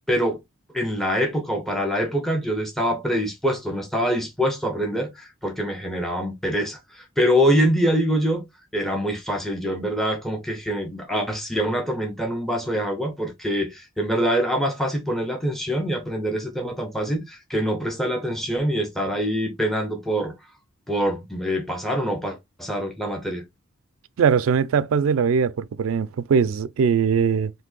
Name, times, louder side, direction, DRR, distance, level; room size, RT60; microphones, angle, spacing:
voice 1, 0.1-0.4 0.7-20.4 20.9-23.4, equal, ahead, 0.6 m, -25 dB
voice 2, 24.2-27.5, right 6 dB, 85° right, 0.4 m, -21 dB
2.7 x 2.6 x 3.7 m
head